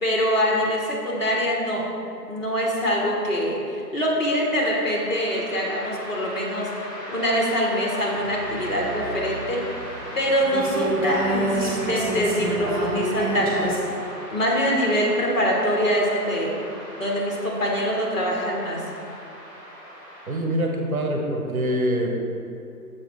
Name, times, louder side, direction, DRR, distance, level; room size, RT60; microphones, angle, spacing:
voice 1, 0.0-1.9 2.3-6.7 7.1-9.7 10.1-13.7 14.3-16.5 17.0-18.8, equal, 50° left, -2 dB, 1.6 m, -24 dB
sound 1, 4.0-20.4, equal, 20° left, 1.6 m, -39 dB
sound 2, 8.1-13.8, right 2 dB, 20° right, 1.1 m, -29 dB
voice 2, 20.3-22.2, equal, 55° right, 1 dB, 1.0 m, -24 dB
7.1 x 5.3 x 3.7 m, 2.6 s
hypercardioid pair, 170°, 49 cm